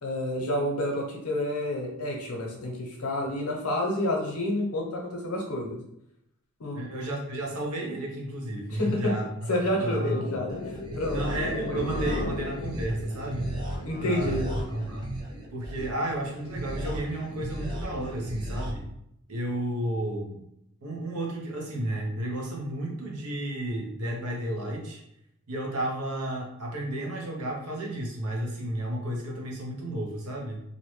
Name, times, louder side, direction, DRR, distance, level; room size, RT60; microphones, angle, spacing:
voice 1, 0.0-5.8 6.6-6.8 8.7-9.1 9.5-10.6 10.9-11.2 13.8-14.5, left 1 dB, 80° left, 0 dB, 0.7 m, -29 dB
voice 2, 6.7-10.4 11.1-13.5 14.0-15.1 15.5-18.9 19.3-20.4 20.8-25.0 25.5-30.6, right 1 dB, 85° right, 0 dB, 0.7 m, -32 dB
sound 1, 9.7-14.7, left 3 dB, 65° left, 0.4 m, -38 dB
sound 2, 10.5-18.7, right 1 dB, 20° right, 0.4 m, -35 dB
2.6 x 2.1 x 3.1 m, 0.79 s
head